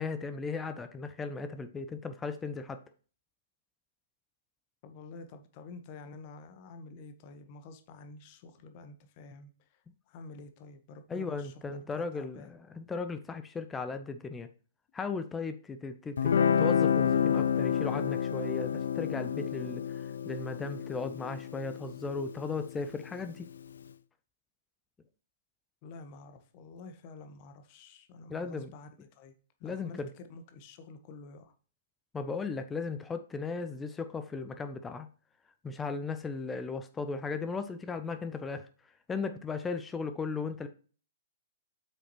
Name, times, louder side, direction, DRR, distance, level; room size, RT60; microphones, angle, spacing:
voice 1, 0.0-2.8 11.1-14.5 14.9-23.5 28.3-28.7 29.6-30.1 32.1-35.1 35.6-38.6 39.1-40.7, left 4 dB, 10° left, 9 dB, 0.6 m, -36 dB
voice 2, 4.8-12.5 25.8-29.3 29.6-31.5, left 3 dB, 35° left, 8 dB, 1.1 m, -49 dB
Guitar, 16.2-23.3, left 8 dB, 65° left, 0.4 m, -29 dB
7.7 x 6.3 x 3.0 m, 0.39 s
figure-of-eight pair, 115°, 0 cm